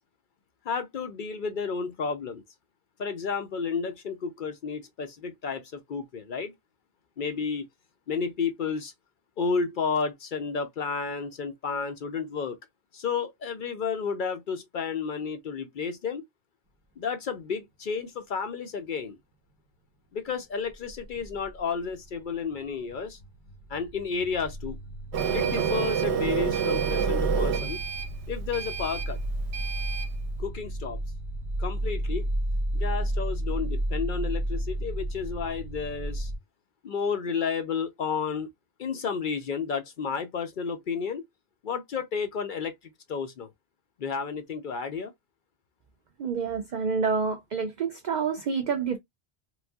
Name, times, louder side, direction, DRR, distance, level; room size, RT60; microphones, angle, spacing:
voice 1, 0.6-2.4 3.0-6.5 7.2-7.7 8.1-8.9 9.4-12.6 12.9-16.2 17.0-19.2 20.1-23.2 23.7-24.8 25.3-27.8 28.3-29.2 30.4-31.0 31.6-32.3 32.7-36.3 36.8-38.5 38.8-41.2 41.6-42.7 43.1-43.5 44.0-45.1, left 5 dB, 60° left, 0.6 m, -31 dB
sound 1, 20.7-22.2 22.5-36.4, right 1 dB, 20° right, 0.9 m, -32 dB
Printer, 25.1-30.1, right 8 dB, 85° right, 0.9 m, -29 dB
voice 2, 46.2-49.0, right 5 dB, 55° right, 0.5 m, -28 dB
3.1 x 2.6 x 2.2 m
omnidirectional pair, 1.1 m